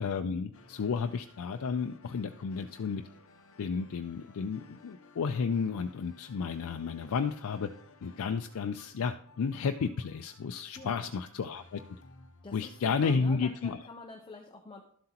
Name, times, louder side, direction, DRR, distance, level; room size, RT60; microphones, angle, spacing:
voice 1, 0.0-3.0 3.6-7.7 8.0-11.8 12.5-13.8, left 5 dB, 85° left, 6 dB, 0.4 m, -32 dB
sound 1, 0.5-13.0, left 3 dB, 70° left, 0.8 m, -58 dB
voice 2, 10.7-11.1 12.4-14.8, left 2 dB, 20° left, 2 dB, 0.6 m, -47 dB
12.0 x 7.6 x 2.9 m, 0.63 s
head